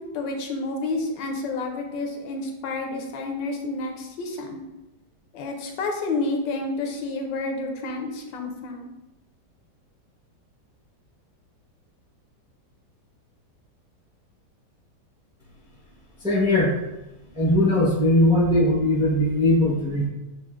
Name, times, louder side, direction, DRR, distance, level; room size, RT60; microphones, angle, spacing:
voice 1, 0.0-4.6 5.3-8.9, left 3 dB, 85° left, 2 dB, 1.4 m, -30 dB
voice 2, 16.2-16.8 17.3-20.1, left 1 dB, 5° right, -6 dB, 0.5 m, -20 dB
7.1 x 2.7 x 2.4 m, 0.99 s
omnidirectional pair, 2.0 m